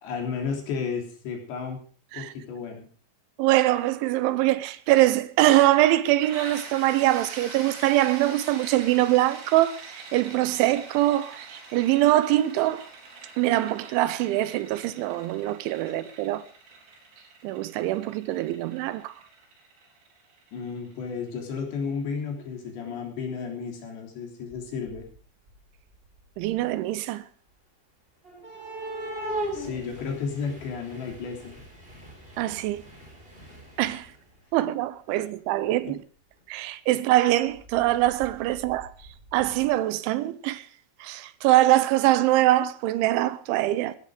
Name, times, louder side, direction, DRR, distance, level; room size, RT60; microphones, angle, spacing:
voice 1, 0.0-1.8 2.1-2.9 15.9-16.0 20.5-25.1 29.5-31.6 35.1-35.2 35.9-36.0, left 5 dB, 65° left, 5.4 m, -33 dB
voice 2, 3.4-12.9 13.4-16.4 17.4-19.2 26.4-27.2 32.4-32.8 33.8-34.1 34.5-36.0 36.5-38.9 39.3-40.7 41.0-44.0, right 15 dB, 80° right, 3.1 m, -23 dB
sound 1, 6.2-21.8, right 3 dB, 65° right, 6.4 m, -44 dB
sound 2, 24.5-25.2 25.5-26.7 28.2-34.4 35.7-35.8 36.4-36.5 37.5-39.7, right 1 dB, 15° right, 3.3 m, -39 dB
16.0 x 13.0 x 5.0 m
omnidirectional pair, 5.5 m